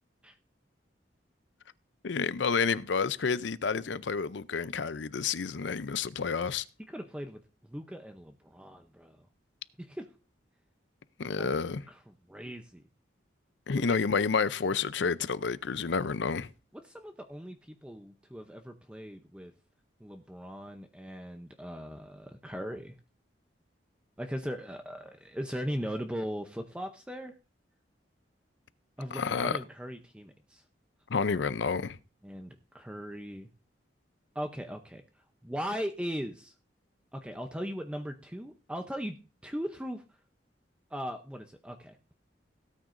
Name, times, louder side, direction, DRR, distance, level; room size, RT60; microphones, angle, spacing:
voice 1, 2.0-6.6 11.2-11.8 13.7-16.5 29.1-29.6 31.1-32.0, left 5 dB, 75° left, 0.6 m, -30 dB
voice 2, 6.9-7.4 7.7-9.3 9.8-10.1 11.4-11.6 11.9-12.8 13.7-14.2 16.8-19.5 20.0-22.9 24.2-27.4 29.0-30.6 32.2-33.5 34.3-35.0 35.4-36.5 37.1-39.2 39.4-40.0 40.9-42.0, equal, 5° right, 0.7 m, -39 dB
17.5 x 9.1 x 2.6 m
head